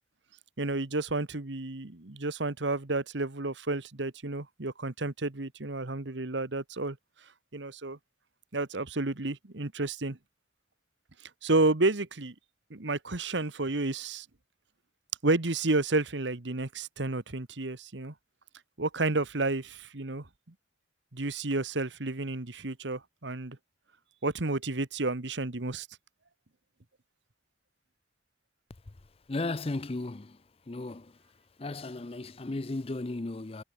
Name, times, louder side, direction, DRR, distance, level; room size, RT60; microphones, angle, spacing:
voice 1, 0.6-7.0 7.5-8.0 8.5-10.2 11.4-12.3 12.7-14.3 15.2-18.1 18.8-20.3 21.1-23.6 24.2-25.9, right 2 dB, 75° right, 1.5 m, -31 dB
voice 2, 29.3-30.4 30.7-31.1 31.6-33.6, left 2 dB, 30° left, 0.5 m, -35 dB
head